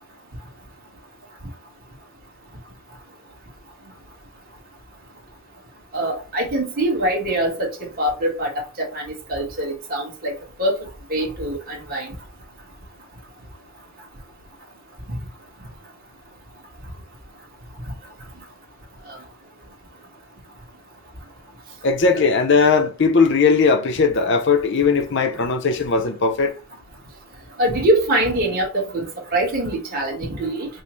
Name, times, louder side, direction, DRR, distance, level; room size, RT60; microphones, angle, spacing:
voice 1, 5.9-8.5 8.8-10.3 10.6-10.7 11.1-12.1 19.1-19.2 27.6-29.0 29.3-30.7, right 1 dB, 45° right, 1.4 m, -23 dB
voice 2, 21.8-26.5, left 4 dB, 55° left, 0.6 m, -18 dB
5.3 x 2.1 x 3.0 m
head